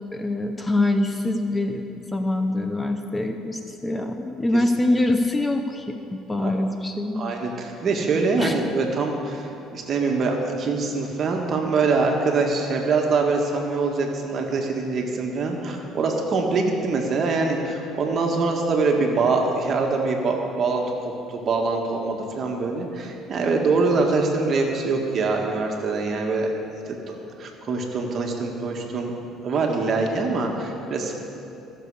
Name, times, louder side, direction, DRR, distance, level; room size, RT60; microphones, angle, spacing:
voice 1, 0.1-7.2 8.4-8.6, left 2 dB, 15° left, 6 dB, 0.6 m, -24 dB
voice 2, 7.1-26.5 26.9-29.1 29.4-31.1, right 3 dB, 45° right, 1 dB, 1.6 m, -24 dB
15.0 x 6.9 x 4.8 m, 2.8 s
cardioid pair, 100°, 0 cm